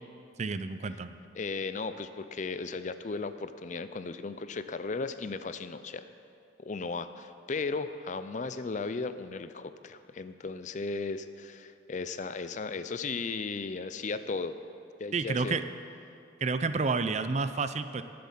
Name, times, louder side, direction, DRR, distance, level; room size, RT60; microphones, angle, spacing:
voice 1, 0.4-1.2 15.1-15.6 16.4-18.0, right 4 dB, 35° right, 11 dB, 0.5 m, -30 dB
voice 2, 1.3-6.1 6.6-14.6 15.0-15.6, left 4 dB, 40° left, 11 dB, 0.4 m, -36 dB
18.0 x 7.7 x 5.6 m, 2.5 s
head